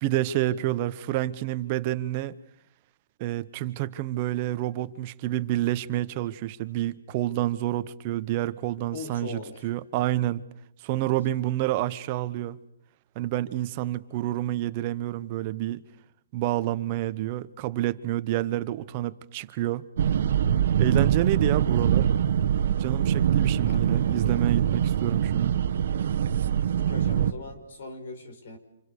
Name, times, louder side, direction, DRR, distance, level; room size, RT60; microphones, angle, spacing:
voice 1, 0.0-2.4 3.2-10.4 10.8-12.6 13.1-15.8 16.3-19.9 20.8-22.1 22.8-25.6, right 14 dB, 30° right, 1.0 m, -28 dB
voice 2, 8.9-9.7 23.7-24.4 26.7-28.6, left 3 dB, 60° left, 5.4 m, -40 dB
sound 1, 20.0-27.3, right 9 dB, 60° right, 1.4 m, -23 dB
29.0 x 27.5 x 6.7 m
hypercardioid pair, 160°, 0 cm